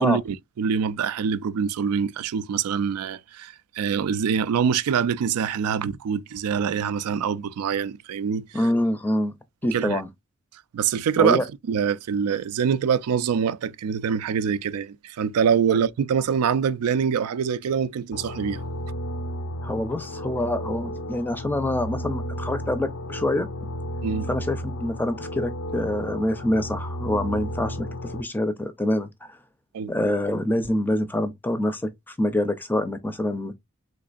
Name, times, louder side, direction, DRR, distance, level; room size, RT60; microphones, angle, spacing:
voice 1, 0.0-8.6 9.7-10.0 10.7-18.6 24.0-24.3 29.7-29.9, right 7 dB, 90° right, 0.3 m, -25 dB
voice 2, 8.5-9.3 9.6-10.1 11.2-11.4 15.7-15.8 19.6-23.5 24.3-29.4 29.9-33.5, left 1 dB, 10° left, 0.4 m, -26 dB
sound 1, 18.1-28.2, equal, 75° left, 0.5 m, -33 dB
3.5 x 3.1 x 2.5 m
head